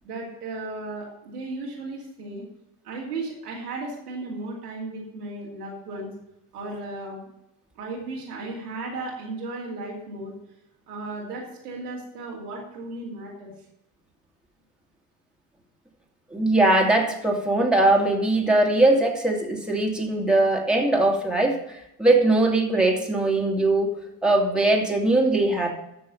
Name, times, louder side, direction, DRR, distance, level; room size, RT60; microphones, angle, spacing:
voice 1, 0.0-2.4 2.8-6.1 6.5-7.2 7.7-10.3 10.9-13.5, right 2 dB, 85° right, -3 dB, 2.6 m, -35 dB
voice 2, 16.3-23.9 24.2-25.7, right 2 dB, ahead, 0 dB, 2.7 m, -21 dB
13.5 x 6.3 x 5.4 m, 0.84 s
figure-of-eight pair, 45°, 45 cm